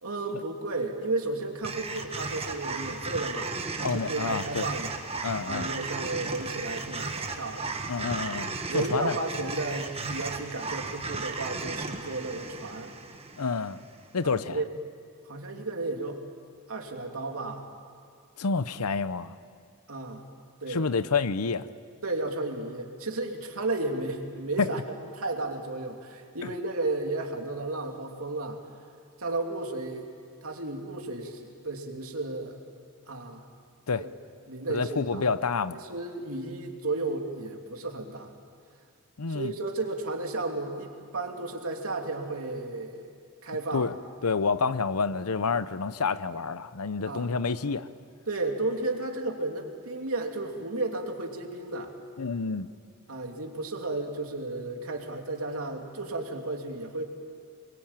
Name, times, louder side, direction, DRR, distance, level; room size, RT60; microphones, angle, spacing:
voice 1, 0.0-4.9 5.4-7.7 8.7-12.9 14.2-14.7 15.3-16.2 16.7-17.6 19.9-20.3 20.6-20.9 22.0-24.8 25.1-28.6 29.2-30.1 30.4-32.6 33.1-33.4 34.0-34.1 34.5-35.2 35.7-38.3 39.3-43.1 43.4-43.9 47.0-47.3 48.3-51.9 53.1-57.0, right 2 dB, 75° right, 2 dB, 2.9 m, -33 dB
sound 1, 1.6-14.0, right 3 dB, 25° right, 1.5 m, -35 dB
voice 2, 3.8-4.7 5.2-5.7 7.9-9.2 13.4-13.8 14.1-14.6 18.4-19.3 20.7-21.7 24.6-24.7 33.9-34.0 34.7-35.8 39.2-39.5 43.7-43.9 44.2-47.9 52.2-52.7, left 4 dB, 85° left, 14 dB, 0.8 m, -28 dB
26.0 x 22.5 x 8.9 m, 2.2 s
head